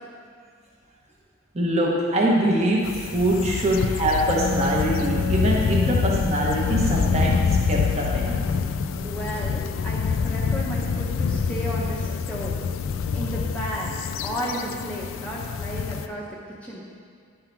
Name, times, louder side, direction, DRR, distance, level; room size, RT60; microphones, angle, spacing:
voice 1, 1.5-8.4, right 1 dB, 30° right, -4 dB, 0.9 m, -23 dB
sound 1, 2.8-16.1, left 5 dB, 75° left, 0.3 m, -26 dB
Wind instrument woodwind instrument, 4.3-9.7, left 2 dB, 10° right, 0.9 m, -32 dB
voice 2, 9.0-12.6 13.1-13.9 14.2-16.9, equal, 5° left, -5 dB, 0.7 m, -33 dB
11.0 x 3.7 x 4.4 m, 2.2 s
head